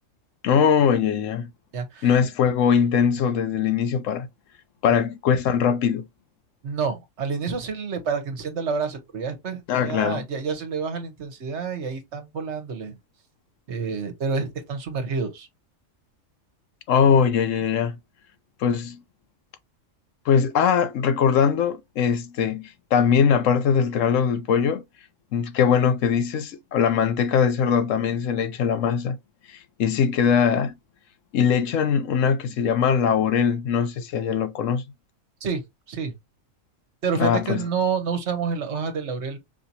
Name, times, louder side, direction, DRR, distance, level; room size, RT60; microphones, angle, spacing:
voice 1, 0.4-1.5 2.0-4.3 4.8-6.0 9.7-10.2 16.9-17.9 18.6-19.0 20.3-24.8 25.3-29.2 29.5-30.7 31.3-34.8 37.2-37.6, left 7 dB, 80° left, 1.0 m, -21 dB
voice 2, 1.7-2.1 6.6-13.0 13.7-15.5 35.4-35.6 35.9-36.1 37.0-39.4, right 5 dB, 60° right, 1.2 m, -28 dB
5.0 x 2.8 x 2.7 m
omnidirectional pair, 1.3 m